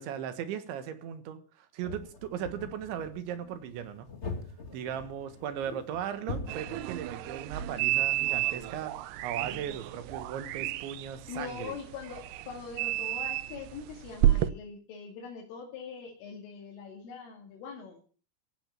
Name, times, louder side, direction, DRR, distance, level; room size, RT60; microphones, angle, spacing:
voice 1, 0.0-4.1 4.7-11.8, right 9 dB, 70° right, 3.6 m, -37 dB
sound 1, 1.8-7.4, left 3 dB, 55° left, 0.7 m, -43 dB
sound 2, 6.5-14.5, right 14 dB, 90° right, 2.3 m, -31 dB
voice 2, 11.3-18.0, left 5 dB, 75° left, 5.0 m, -42 dB
16.0 x 7.8 x 9.0 m
omnidirectional pair, 5.8 m